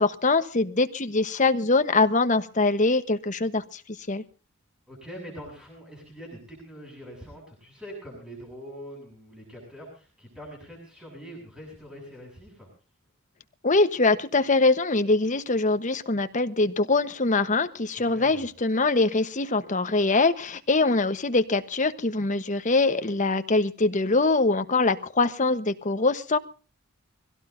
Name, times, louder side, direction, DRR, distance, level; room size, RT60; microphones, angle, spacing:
voice 1, 0.0-3.8 4.1-4.2 13.6-26.4, left 3 dB, 35° left, 10 dB, 1.1 m, -23 dB
voice 2, 4.9-12.7 17.9-18.5, equal, 5° right, -1 dB, 7.0 m, -43 dB
24.5 x 17.0 x 2.7 m, 0.36 s
head